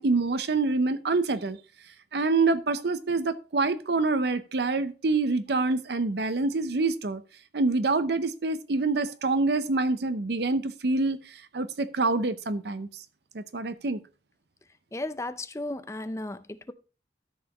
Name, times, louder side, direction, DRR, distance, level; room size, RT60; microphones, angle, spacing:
voice 1, 0.0-1.6 2.1-7.2 7.5-11.2 11.5-12.9 13.3-14.0, right 3 dB, 60° right, 0.6 m, -26 dB
voice 2, 14.9-16.7, left 2 dB, 15° left, 0.4 m, -35 dB
13.0 x 5.5 x 3.0 m
head